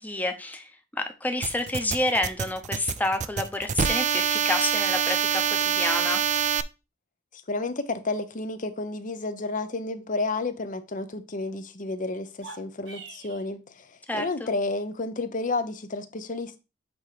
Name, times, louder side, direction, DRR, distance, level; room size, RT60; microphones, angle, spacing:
voice 1, 0.0-6.2 14.1-14.5, left 1 dB, 10° left, 0.9 m, -29 dB
sound 1, 1.4-6.6, right 8 dB, 40° right, 0.4 m, -25 dB
voice 2, 7.3-16.6, left 3 dB, 45° left, 0.8 m, -31 dB
sound 2, 12.3-13.5, right 3 dB, 80° right, 1.5 m, -44 dB
8.1 x 3.1 x 4.9 m
head